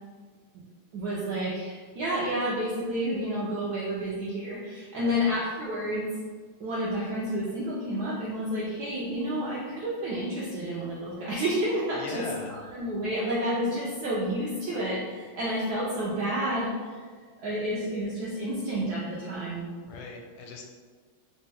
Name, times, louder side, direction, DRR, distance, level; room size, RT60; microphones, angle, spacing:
voice 1, 0.9-6.1 6.6-12.2 12.7-17.1 17.4-19.7, equal, 75° right, -6 dB, 0.9 m, -30 dB
voice 2, 12.0-12.6 19.9-20.6, left 3 dB, 85° left, 1 dB, 1.5 m, -39 dB
4.2 x 2.1 x 3.3 m, 1.6 s
omnidirectional pair, 2.3 m